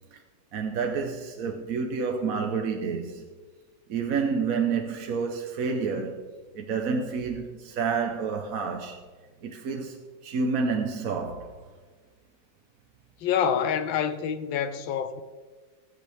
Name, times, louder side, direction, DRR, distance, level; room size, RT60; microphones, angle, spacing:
voice 1, 0.5-3.2 3.9-6.2 6.5-9.0 9.4-11.5, right 5 dB, 55° right, 1.2 m, -29 dB
voice 2, 13.2-15.2, left 8 dB, 90° left, 1.6 m, -27 dB
20.5 x 8.2 x 3.5 m
omnidirectional pair, 2.0 m